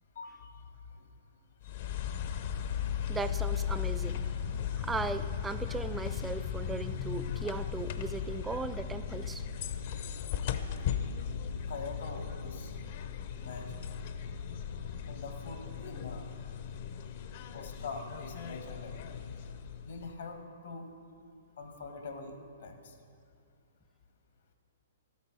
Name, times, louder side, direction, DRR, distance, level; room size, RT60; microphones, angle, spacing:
voice 1, 0.1-0.6 0.9-1.1 1.6-1.9 11.7-12.7 13.4-14.0 15.0-16.3 17.5-19.0 19.8-20.9 21.6-23.0, left 3 dB, 70° left, 5 dB, 1.3 m, -44 dB
sound 1, 1.6-20.1, left 8 dB, 55° left, 0.6 m, -37 dB
voice 2, 3.1-4.2 4.8-9.4, right 4 dB, 10° right, 12 dB, 0.4 m, -37 dB
12.5 x 8.3 x 4.6 m, 2.4 s
hypercardioid pair, 130°, 0 cm